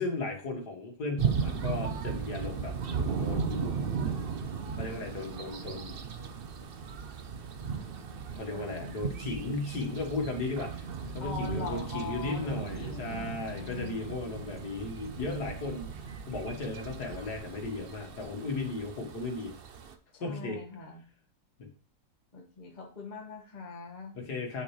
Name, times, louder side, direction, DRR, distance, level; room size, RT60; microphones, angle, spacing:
voice 1, 0.0-2.8 3.2-3.7 4.1-4.2 4.7-6.0 8.3-15.9 16.3-19.5 20.2-20.6 24.1-24.6, left 3 dB, 60° left, 2 dB, 2.1 m, -36 dB
sound 1, 1.2-19.9, right 6 dB, 60° right, 0.6 m, -36 dB
voice 2, 8.5-8.9 11.2-14.2 20.1-21.0 22.3-24.1, left 4 dB, 25° left, 1 dB, 1.5 m, -42 dB
8.7 x 6.7 x 3.2 m, 0.43 s
omnidirectional pair, 2.0 m